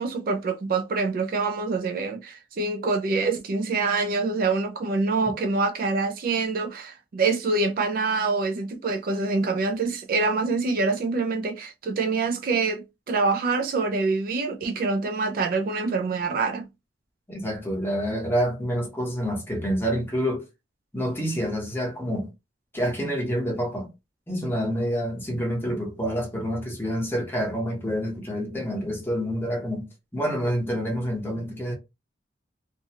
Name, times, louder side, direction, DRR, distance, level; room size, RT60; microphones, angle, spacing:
voice 1, 0.0-16.7, right 3 dB, 45° right, 0.3 m, -25 dB
voice 2, 17.3-20.5 20.9-22.3 22.7-23.9 24.3-29.9 30.1-31.7, equal, 10° left, 0.9 m, -27 dB
2.5 x 2.2 x 2.7 m
head